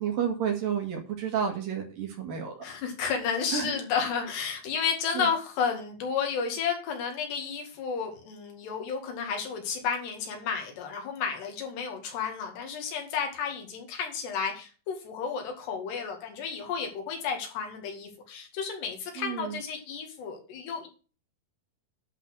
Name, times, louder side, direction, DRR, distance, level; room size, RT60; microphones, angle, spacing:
voice 1, 0.0-2.7 3.5-3.7 5.2-5.3 19.2-19.6, right 7 dB, 60° right, 1 dB, 3.7 m, -31 dB
voice 2, 2.6-20.9, left 6 dB, 85° left, 3 dB, 4.3 m, -32 dB
11.0 x 4.2 x 7.9 m, 0.35 s
omnidirectional pair, 4.7 m